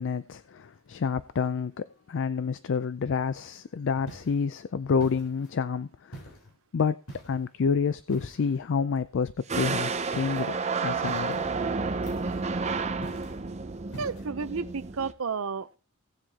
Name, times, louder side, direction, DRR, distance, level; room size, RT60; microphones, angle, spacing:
voice 1, 0.0-6.3 6.7-7.0 7.3-11.4, left 5 dB, 60° left, 0.4 m, -29 dB
sound 1, 4.1-4.4 5.0-5.6 6.1-6.5 7.1-7.5 8.1-8.6 10.1-10.5 11.1-11.5 12.0-12.5 13.0-13.4 13.9-14.3, right 2 dB, 75° left, 4.1 m, -45 dB
sound 2, 9.5-15.1, right 4 dB, 30° right, 0.6 m, -31 dB
voice 2, 14.0-15.8, right 5 dB, 70° right, 0.7 m, -32 dB
17.0 x 7.5 x 2.8 m
head